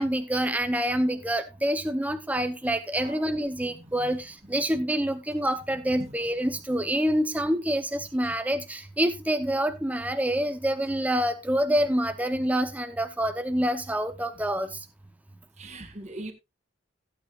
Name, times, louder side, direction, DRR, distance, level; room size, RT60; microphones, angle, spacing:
voice 1, 0.0-14.8, right 1 dB, 10° right, 0.8 m, -27 dB
voice 2, 3.7-4.2 5.9-6.1 15.6-16.3, right 2 dB, 35° right, 1.8 m, -41 dB
15.5 x 9.0 x 2.5 m
head